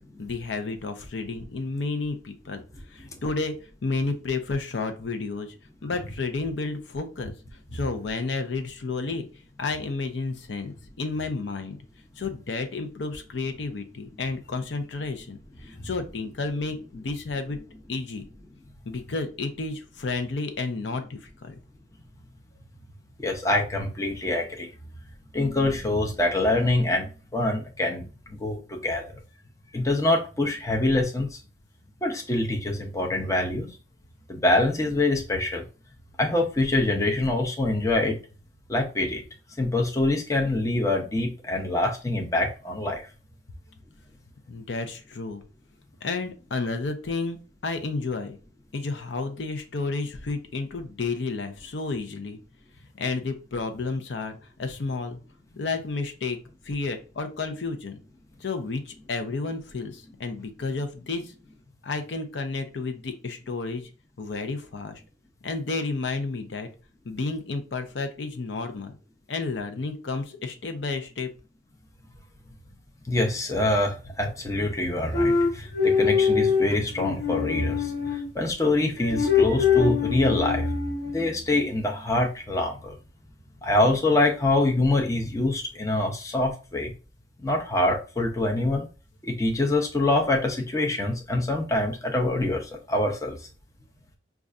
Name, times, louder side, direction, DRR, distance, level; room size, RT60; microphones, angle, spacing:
voice 1, 0.2-2.6 2.9-3.5 3.8-5.5 5.8-7.3 7.7-9.2 9.6-11.8 12.2-17.6 17.9-18.2 18.9-21.6 44.5-45.4 46.0-47.4 47.6-48.4 48.7-52.4 53.0-55.2 55.6-56.4 56.6-58.0 58.4-61.3 61.8-63.9 64.2-65.0 65.4-66.7 67.0-68.9 69.3-71.3, left 3 dB, 80° left, 7 dB, 0.6 m, -31 dB
voice 2, 23.2-24.7 25.3-29.0 29.7-31.4 32.0-33.7 34.3-35.7 36.2-38.2 38.7-39.2 39.6-43.1 73.1-80.8 81.1-83.0 83.6-86.9 87.4-88.9 89.2-93.4, left 2 dB, 20° left, 1 dB, 0.5 m, -25 dB
sound 1, 75.1-78.3 79.0-81.3, left 6 dB, 60° left, 1.0 m, -23 dB
5.2 x 2.4 x 2.4 m, 0.35 s
head